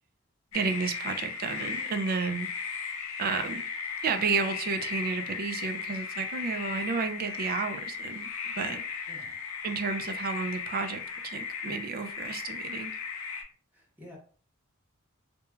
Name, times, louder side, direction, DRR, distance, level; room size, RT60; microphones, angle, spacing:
sound 1, 0.5-13.4, left 6 dB, 75° left, 0.5 m, -36 dB
voice 1, 0.5-2.5 3.2-3.6 4.0-8.8 9.6-13.0, right 5 dB, 45° right, 8 dB, 0.3 m, -32 dB
voice 2, 9.1-9.4 13.7-14.2, left 1 dB, 10° right, -4 dB, 0.9 m, -50 dB
3.0 x 2.2 x 2.2 m, 0.43 s
head